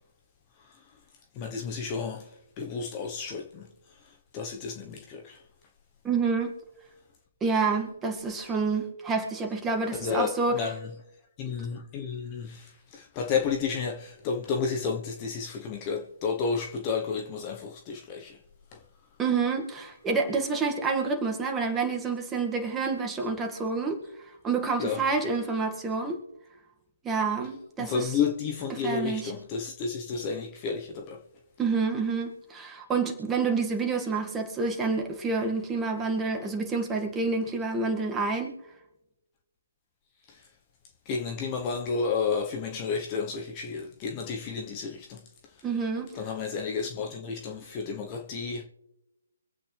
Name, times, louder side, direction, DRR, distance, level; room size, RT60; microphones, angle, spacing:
voice 1, 1.3-2.3 2.6-3.6 4.3-5.4 9.9-10.9 11.4-18.4 18.7-18.8 24.8-25.0 27.8-31.2 40.3-40.4 41.1-45.2 46.1-48.6, left 5 dB, 25° left, 1.2 m, -31 dB
voice 2, 6.0-6.5 7.4-10.7 19.2-24.0 24.4-26.2 27.0-28.1 28.7-29.3 31.6-38.5 45.6-46.1, right 4 dB, 10° right, 2.0 m, -28 dB
25.0 x 8.5 x 3.4 m
figure-of-eight pair, 135°, 0 cm